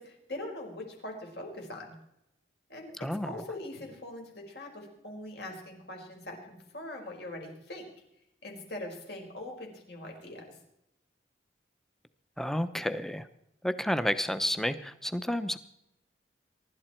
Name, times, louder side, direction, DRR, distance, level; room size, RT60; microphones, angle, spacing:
voice 1, 0.0-2.0 2.7-3.0 3.2-7.9 8.4-10.6, left 1 dB, 65° left, 1 dB, 5.3 m, -42 dB
voice 2, 3.0-3.4 12.4-13.3 13.6-15.6, equal, ahead, 12 dB, 0.8 m, -31 dB
23.5 x 12.0 x 4.5 m, 0.83 s
head